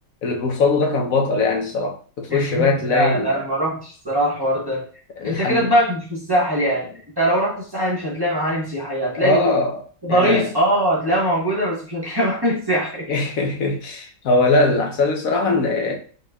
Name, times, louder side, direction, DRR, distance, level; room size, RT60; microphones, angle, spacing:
voice 1, 0.2-3.3 5.2-5.7 9.2-9.8 10.1-10.5 13.1-16.0, left 3 dB, 80° left, 1.4 m, -21 dB
voice 2, 2.3-4.9 5.2-9.4 10.0-13.1, equal, 20° right, 1.1 m, -22 dB
5.0 x 4.0 x 2.3 m
omnidirectional pair, 1.4 m